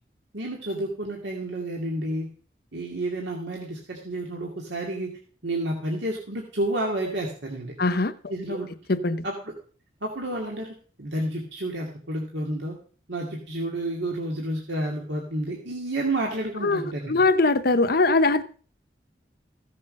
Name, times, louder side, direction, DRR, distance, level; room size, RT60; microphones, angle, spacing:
voice 1, 0.3-2.3 2.7-5.1 5.4-7.7 8.3-8.7 9.2-9.5 10.0-12.7 13.1-17.2, right 1 dB, 80° right, -1 dB, 2.4 m, -30 dB
voice 2, 7.8-8.1 8.9-9.2 16.6-16.8 17.1-18.4, left 3 dB, 60° left, 11 dB, 0.9 m, -21 dB
15.5 x 7.7 x 5.4 m, 0.42 s
head